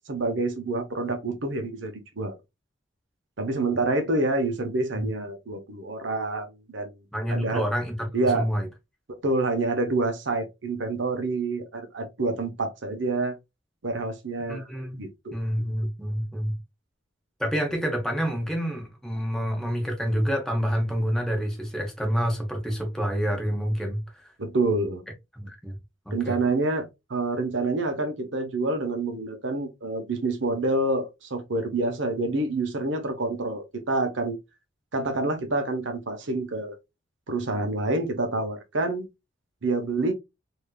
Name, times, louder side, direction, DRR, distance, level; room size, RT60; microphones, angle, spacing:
voice 1, 0.1-2.4 3.4-6.9 7.3-7.6 8.1-8.5 9.2-13.4 13.8-14.7 15.0-15.4 24.4-25.0 26.1-34.4 34.9-36.8 37.3-39.1 39.6-40.1, right 2 dB, 70° right, 0.8 m, -27 dB
voice 2, 7.1-8.7 14.5-15.0 15.3-16.5 17.4-24.3 25.3-25.8 26.1-26.4, equal, 5° left, 0.9 m, -28 dB
3.4 x 2.7 x 2.2 m
head